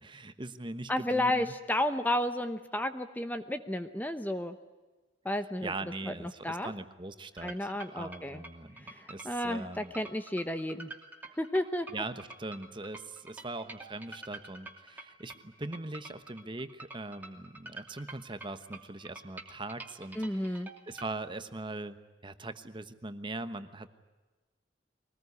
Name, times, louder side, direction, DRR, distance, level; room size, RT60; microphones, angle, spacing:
voice 1, 0.0-1.5 5.4-9.9 11.9-23.9, right 2 dB, 25° right, 11 dB, 1.1 m, -41 dB
voice 2, 0.9-4.6 5.2-5.7 6.1-6.7 7.4-8.4 8.8-10.9 11.4-11.9 20.2-20.7, left 1 dB, 10° left, 9 dB, 0.9 m, -32 dB
sound 1, 7.4-21.1, right 3 dB, 10° right, 2.7 m, -47 dB
23.5 x 19.5 x 9.6 m, 1.2 s
head